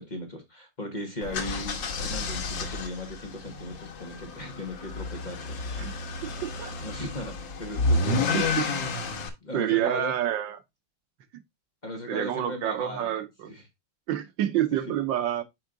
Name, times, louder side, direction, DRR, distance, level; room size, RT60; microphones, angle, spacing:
voice 1, 0.0-5.5 6.8-8.5 9.4-10.1 11.8-13.2 13.5-13.6, left 1 dB, 25° left, 1.3 m, -37 dB
sound 1, 1.2-9.3, left 3 dB, 90° left, 1.9 m, -30 dB
voice 2, 6.4-6.7 8.3-8.6 9.5-10.6 12.1-13.5 14.1-15.4, right 11 dB, 85° right, 1.5 m, -28 dB
6.1 x 4.7 x 3.8 m
omnidirectional pair, 2.0 m